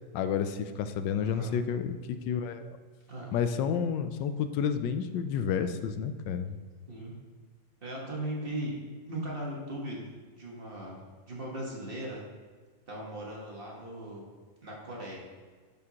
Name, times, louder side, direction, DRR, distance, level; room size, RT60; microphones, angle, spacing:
voice 1, 0.1-2.0 2.2-2.7 3.3-6.6, left 7 dB, 85° left, 10 dB, 1.3 m, -30 dB
voice 2, 1.2-1.5 3.1-3.3 6.9-7.1 7.8-8.7 9.1-10.1 10.4-12.2 12.9-14.2 14.6-15.2, right 1 dB, 35° right, -3 dB, 1.4 m, -38 dB
7.0 x 6.8 x 2.9 m, 1.5 s
omnidirectional pair, 2.0 m